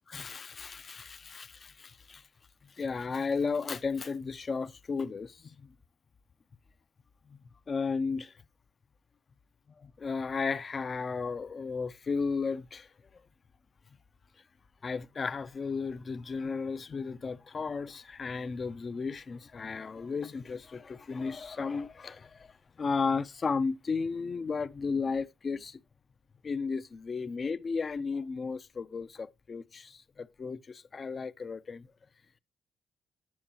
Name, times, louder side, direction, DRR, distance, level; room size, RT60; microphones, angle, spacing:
voice 1, 0.1-2.2 2.8-5.6 7.3-7.4 7.7-8.3 9.8-12.9 14.8-22.5 22.8-25.8 26.4-31.9, left 5 dB, 40° left, 0.4 m, -34 dB
8.8 x 7.0 x 2.9 m
cardioid pair, 90°, 0 cm